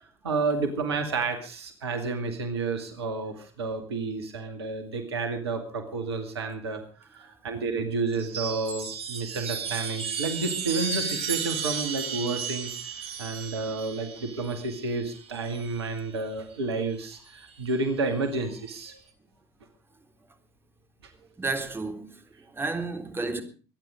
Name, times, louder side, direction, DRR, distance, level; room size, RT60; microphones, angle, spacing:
voice 1, 0.2-6.8 7.1-12.7 13.2-19.0, right 3 dB, 80° right, 2.2 m, -30 dB
Chime, 8.1-15.9 17.1-17.8, right 6 dB, 50° right, 4.1 m, -34 dB
voice 2, 21.4-23.4, right 3 dB, 15° right, 3.5 m, -32 dB
23.5 x 10.0 x 5.0 m
figure-of-eight pair, 65°, 13 cm